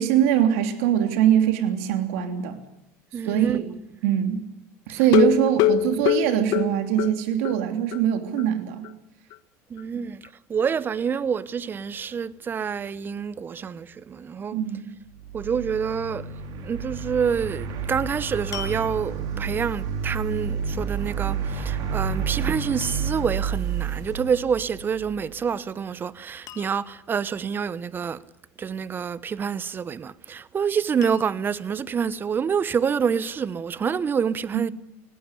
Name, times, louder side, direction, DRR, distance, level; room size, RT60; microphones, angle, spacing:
voice 1, 0.0-2.6 3.2-3.7 4.0-4.4 4.9-8.9 14.5-14.9 34.5-34.6, right 10 dB, 80° right, 3.1 m, -22 dB
voice 2, 3.1-3.6 4.9-5.3 9.7-10.2 10.5-14.6 15.3-16.3 16.6-28.2 28.6-34.7, right 7 dB, 30° right, 1.0 m, -27 dB
sound 1, 5.0-7.6 7.9-8.0 8.4-8.5 8.8-8.9, left 11 dB, 65° left, 1.1 m, -23 dB
sound 2, 15.0-25.3, right 6 dB, 60° right, 3.9 m, -30 dB
sound 3, 17.6-17.8 18.5-19.4 21.8-22.2 22.8-23.3 25.3-25.7 26.0-26.1 26.5-27.1 29.4-30.0 31.0-31.6 32.4-32.5, left 8 dB, 50° left, 2.3 m, -42 dB
19.0 x 17.0 x 9.9 m
supercardioid pair, 115°, 7 cm